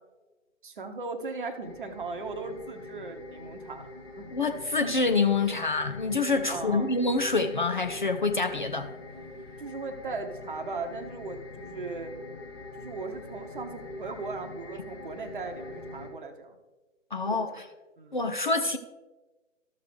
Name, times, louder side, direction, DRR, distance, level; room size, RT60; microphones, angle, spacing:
voice 1, 0.6-4.3 6.5-6.9 9.6-12.1 12.8-16.6 17.2-17.5 18.0-18.3, right 4 dB, 40° right, 6 dB, 0.9 m, -38 dB
sound 1, 1.6-16.1, left 2 dB, 20° left, 1.1 m, -43 dB
voice 2, 4.3-8.9 17.1-17.5 18.1-18.8, left 3 dB, 40° left, 7 dB, 0.4 m, -26 dB
13.5 x 6.5 x 3.3 m, 1.2 s
figure-of-eight pair, 140°, 39 cm